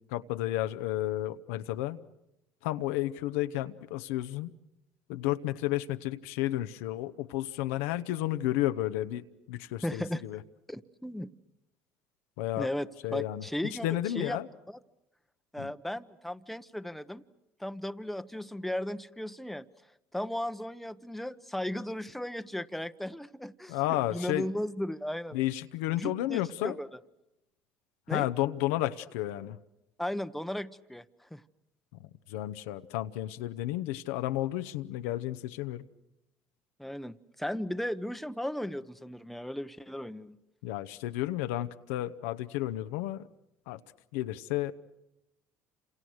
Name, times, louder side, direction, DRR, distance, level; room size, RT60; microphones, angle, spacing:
voice 1, 0.1-2.0 2.6-4.5 5.1-10.4 12.4-12.7 13.0-13.5 13.8-14.5 15.6-15.7 23.7-24.5 25.3-26.8 28.1-29.6 32.3-35.9 40.6-43.3 43.7-43.8 44.1-44.7, left 15 dB, 80° left, 10 dB, 0.9 m, -32 dB
voice 2, 9.8-10.2 10.7-11.3 12.6-13.9 14.1-14.4 14.7-14.8 15.5-17.2 17.6-19.7 20.1-25.4 26.0-26.9 28.1-28.3 30.0-31.0 31.3-31.4 36.8-40.4, left 1 dB, ahead, 10 dB, 1.0 m, -36 dB
29.0 x 27.5 x 6.4 m, 0.88 s
supercardioid pair, 75°, 7 cm